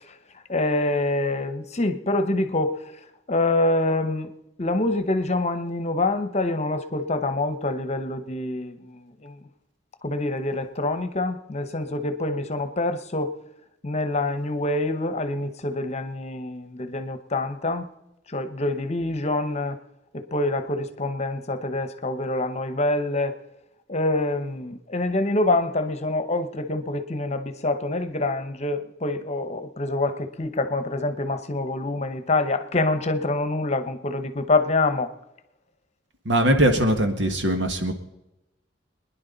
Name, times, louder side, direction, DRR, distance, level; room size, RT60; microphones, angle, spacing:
voice 1, 0.5-2.8 3.3-4.3 4.6-9.4 10.0-13.3 13.8-17.9 18.3-19.8 20.1-23.4 23.9-35.1, left 2 dB, 35° left, 1.0 m, -26 dB
voice 2, 36.3-37.9, right 1 dB, 85° right, 1.8 m, -21 dB
23.5 x 10.5 x 4.0 m
head